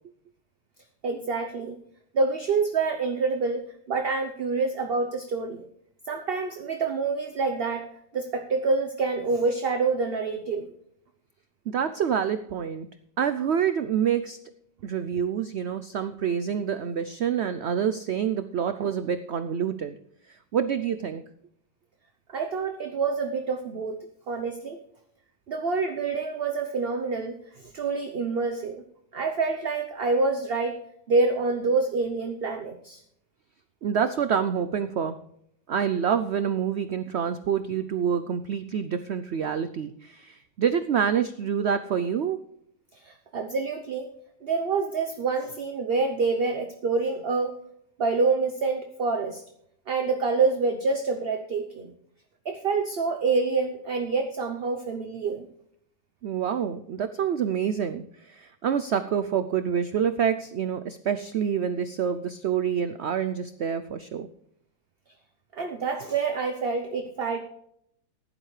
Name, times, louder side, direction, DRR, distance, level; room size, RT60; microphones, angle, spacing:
voice 1, 1.0-1.8 2.1-5.6 6.1-7.9 8.1-10.7 22.3-24.8 25.5-28.8 29.1-30.8 31.1-33.0 43.0-44.1 44.4-47.5 48.0-49.4 49.9-51.9 52.4-55.5 65.5-67.4, right 4 dB, 45° right, 5 dB, 0.9 m, -27 dB
voice 2, 11.7-12.9 13.2-14.4 14.8-19.9 20.5-21.2 33.8-35.2 35.7-42.4 56.2-64.3, right 8 dB, 75° right, 11 dB, 0.6 m, -27 dB
15.5 x 11.5 x 3.3 m, 0.74 s
omnidirectional pair, 1.8 m